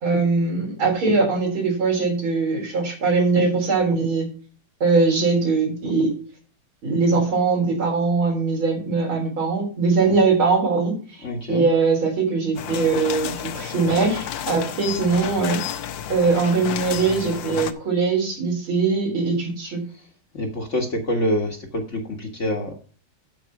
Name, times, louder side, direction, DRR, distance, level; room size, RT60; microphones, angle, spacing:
voice 1, 0.0-4.3 4.8-6.1 6.8-15.6 16.1-19.8, right 4 dB, 75° right, -1 dB, 4.5 m, -21 dB
voice 2, 11.2-11.7 19.9-20.0 20.3-22.7, equal, 40° left, 3 dB, 1.5 m, -26 dB
sound 1, 12.6-17.7, left 10 dB, 70° left, 1.4 m, -31 dB
11.0 x 4.8 x 5.9 m, 0.40 s
omnidirectional pair, 2.2 m